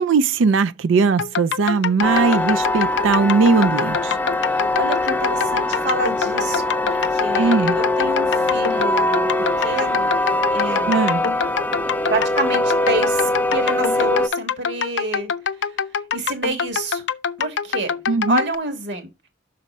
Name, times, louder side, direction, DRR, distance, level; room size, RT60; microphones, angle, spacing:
voice 1, 0.0-4.2 7.4-7.8 10.9-11.2 18.1-18.4, right 4 dB, 90° right, 0.4 m, -19 dB
sound 1, 1.2-18.6, left 6 dB, 65° left, 0.5 m, -25 dB
sound 2, 2.0-14.3, left 2 dB, 10° left, 0.4 m, -22 dB
voice 2, 4.5-9.3 9.6-10.1 10.5-11.2 12.1-15.3 15.6-15.7 16.1-17.0 17.4-17.9 18.3-19.1, right 2 dB, 65° right, 1.8 m, -28 dB
6.2 x 4.2 x 5.4 m
head